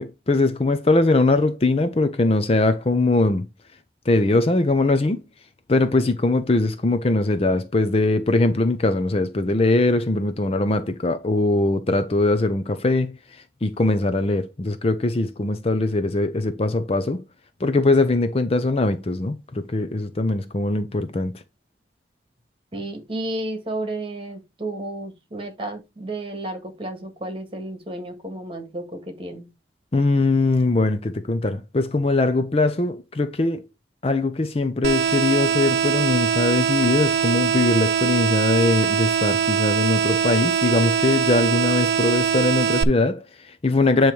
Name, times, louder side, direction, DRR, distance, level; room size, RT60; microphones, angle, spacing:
voice 1, 0.0-3.4 4.1-5.2 5.7-13.2 13.6-17.2 17.6-21.3 29.9-33.7 34.0-44.1, left 2 dB, 35° left, 0.6 m, -21 dB
voice 2, 22.7-29.5, right 1 dB, 30° right, 1.7 m, -32 dB
sound 1, 34.8-42.8, right 7 dB, 65° right, 0.5 m, -22 dB
8.8 x 3.1 x 4.7 m
head